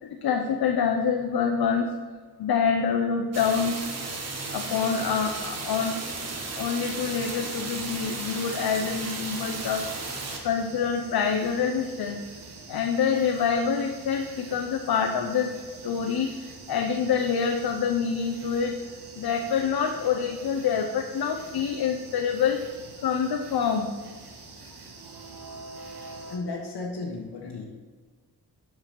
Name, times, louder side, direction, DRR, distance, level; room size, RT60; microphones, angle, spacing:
voice 1, 0.0-1.9 2.4-3.8 4.5-6.0 6.5-9.8 10.4-12.2 12.7-15.5 15.8-18.8 19.1-22.6 23.0-23.9, left 6 dB, 70° left, 4 dB, 0.7 m, -26 dB
sound 1, 3.3-10.4, right 3 dB, 40° right, 1.3 m, -34 dB
sound 2, 6.9-26.4, right 3 dB, 85° right, 1.4 m, -46 dB
voice 2, 26.3-27.6, left 3 dB, 90° left, -2 dB, 1.2 m, -34 dB
9.4 x 4.8 x 5.8 m, 1.5 s
wide cardioid pair, 175°, 39 cm